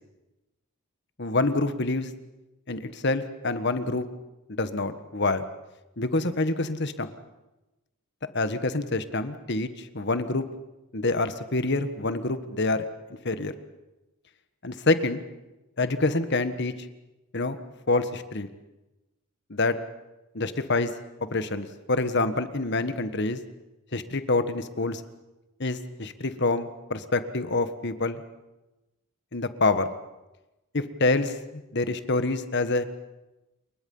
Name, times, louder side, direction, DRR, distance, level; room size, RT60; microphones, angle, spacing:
voice 1, 1.2-2.1 2.7-4.1 4.6-5.4 6.0-7.1 8.3-10.4 10.9-12.8 13.2-13.5 14.6-15.2 15.8-16.9 17.3-17.6 17.9-18.5 19.5-19.8 20.3-20.9 21.3-23.4 23.9-25.0 25.6-28.2 29.3-29.9 30.7-32.8, left 2 dB, 50° left, 10 dB, 1.5 m, -26 dB
28.0 x 22.5 x 5.6 m, 1.0 s
head